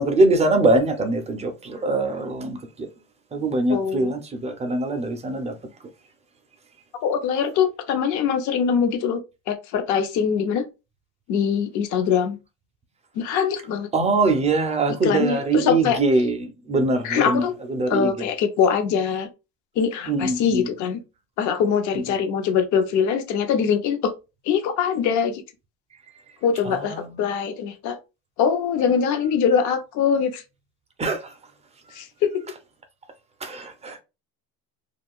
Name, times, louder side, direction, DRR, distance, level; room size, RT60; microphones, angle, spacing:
voice 1, 0.0-2.9 3.3-5.5 13.9-18.3 20.1-20.7 21.9-22.0 26.6-27.2 31.0-31.3 33.4-34.0, right 2 dB, 20° right, 0.4 m, -23 dB
voice 2, 3.7-4.1 7.0-9.2 9.5-10.7 11.3-12.4 13.2-13.9 15.0-16.0 17.0-17.5 17.9-19.3 19.8-21.0 21.4-24.1 24.5-25.4 26.4-28.0 28.4-30.4 31.9-32.4, left 7 dB, 50° left, 0.7 m, -23 dB
2.4 x 2.3 x 3.5 m
supercardioid pair, 125°, 38 cm